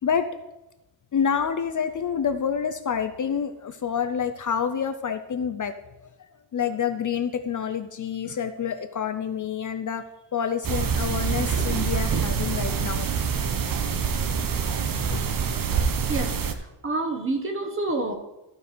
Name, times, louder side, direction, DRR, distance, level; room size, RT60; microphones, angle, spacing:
voice 1, 1.1-5.7 6.5-10.0 10.3-13.1 15.0-15.2, left 7 dB, 45° left, 8 dB, 0.6 m, -28 dB
sound 1, 10.6-16.5, right 6 dB, 45° right, 0.8 m, -25 dB
voice 2, 16.1-18.1, right 2 dB, 25° right, 4 dB, 1.2 m, -28 dB
14.0 x 4.8 x 5.0 m, 0.97 s
wide cardioid pair, 155°, 45 cm